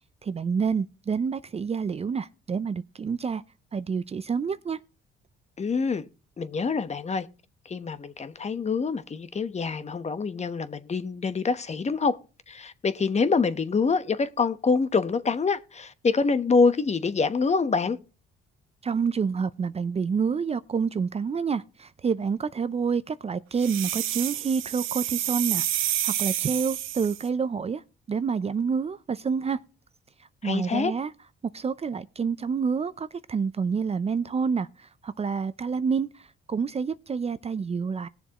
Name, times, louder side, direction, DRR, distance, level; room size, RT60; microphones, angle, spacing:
voice 1, 0.2-3.4 3.7-4.8 18.8-27.8 28.1-29.6 30.4-31.1 31.4-38.1, right 5 dB, 30° right, 0.5 m, -28 dB
voice 2, 5.6-6.0 6.4-7.3 7.6-12.2 12.5-18.0 30.4-30.9, left 4 dB, 35° left, 1.0 m, -25 dB
sound 1, 23.6-27.3, right 13 dB, 85° right, 0.9 m, -29 dB
19.0 x 7.1 x 3.0 m
cardioid pair, 90°, 20 cm